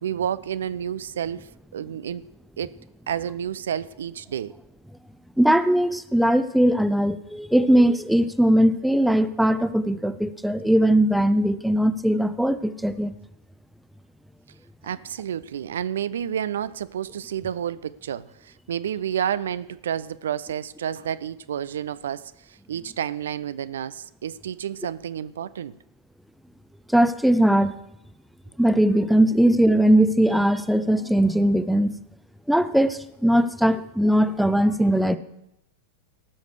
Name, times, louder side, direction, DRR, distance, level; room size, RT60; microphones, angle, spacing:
voice 1, 0.0-2.3 2.6-2.7 3.1-4.5 14.8-25.7, right 9 dB, 65° right, 0.3 m, -30 dB
voice 2, 5.4-13.1 26.9-27.7 28.6-31.9 32.5-35.2, right 1 dB, ahead, 0.6 m, -20 dB
18.5 x 6.5 x 4.9 m
figure-of-eight pair, 90°, 0 cm